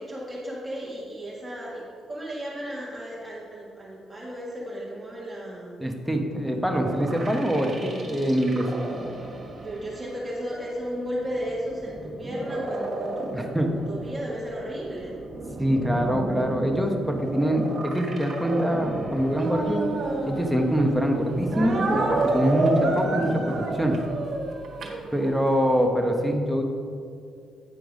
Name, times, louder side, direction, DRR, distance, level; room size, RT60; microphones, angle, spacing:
voice 1, 0.0-5.8 9.6-15.1 24.8-25.2, equal, 20° right, -6 dB, 1.5 m, -34 dB
voice 2, 5.8-8.7 13.3-13.7 15.6-19.8 20.3-24.0 25.1-26.6, equal, ahead, 2 dB, 1.1 m, -24 dB
sound 1, 6.7-24.0, right 1 dB, 35° right, 1.5 m, -34 dB
Speech, 19.3-20.9 21.5-25.6, right 3 dB, 55° right, 1.6 m, -29 dB
9.6 x 4.5 x 5.1 m, 2.3 s
cardioid pair, 90°, 0 cm